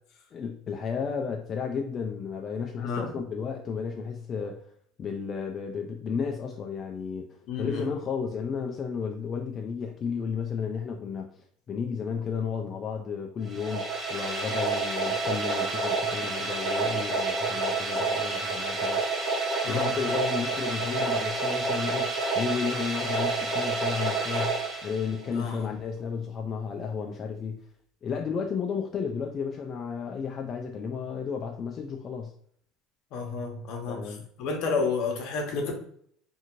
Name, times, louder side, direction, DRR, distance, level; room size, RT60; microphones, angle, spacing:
voice 1, 0.3-4.7 5.0-11.3 11.7-19.0 19.7-27.6 28.0-32.3 33.9-34.2, left 6 dB, 35° left, 2 dB, 0.3 m, -33 dB
voice 2, 2.8-3.1 7.5-7.9 19.6-19.9 25.3-25.7 33.1-35.7, left 4 dB, 60° left, 3 dB, 0.8 m, -31 dB
sound 1, 13.4-25.4, right 3 dB, 20° right, 0.7 m, -29 dB
2.6 x 2.5 x 2.9 m, 0.63 s
cardioid pair, 130°, 0 cm